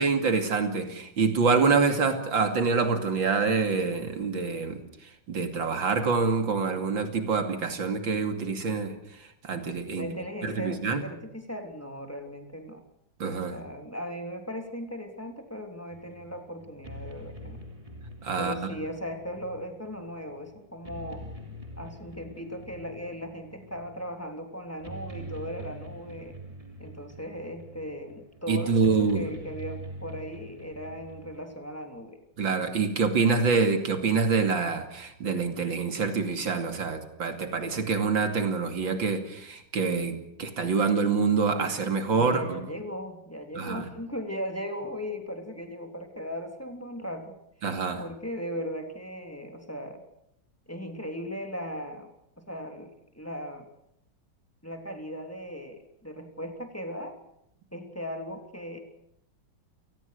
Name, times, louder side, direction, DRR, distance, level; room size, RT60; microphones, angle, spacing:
voice 1, 0.0-4.8 5.3-8.9 9.4-10.1 10.4-11.0 13.2-13.6 18.2-18.7 28.5-29.2 32.4-42.6 43.5-43.9 47.6-48.0, right 4 dB, 85° right, 6 dB, 3.4 m, -26 dB
voice 2, 9.9-12.8 13.5-17.6 18.4-21.2 21.8-26.3 26.8-32.2 42.2-47.3 48.0-50.0 50.7-52.1 52.5-53.7 54.6-57.2 57.7-58.8, equal, 5° left, 4 dB, 3.3 m, -38 dB
sound 1, 15.9-31.5, right 1 dB, 15° right, 3.1 m, -45 dB
29.5 x 19.0 x 6.6 m, 0.78 s
omnidirectional pair, 2.0 m